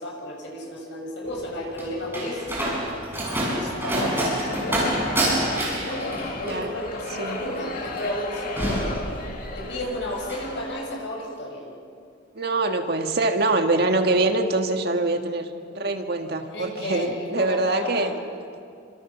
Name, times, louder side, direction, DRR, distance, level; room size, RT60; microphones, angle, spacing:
voice 1, 0.0-2.7 3.3-5.1 5.8-9.0 9.6-11.6 16.5-18.1, left 1 dB, 70° left, -1 dB, 7.0 m, -33 dB
Slam, 1.3-9.7 10.0-10.5, right 1 dB, 10° right, 7.2 m, -28 dB
sound 1, 3.9-11.1, left 2 dB, 50° left, 2.5 m, -35 dB
voice 2, 6.4-6.7 7.2-7.4 12.4-18.2, right 2 dB, 55° right, 5 dB, 1.8 m, -24 dB
27.5 x 26.5 x 6.0 m, 2.4 s
head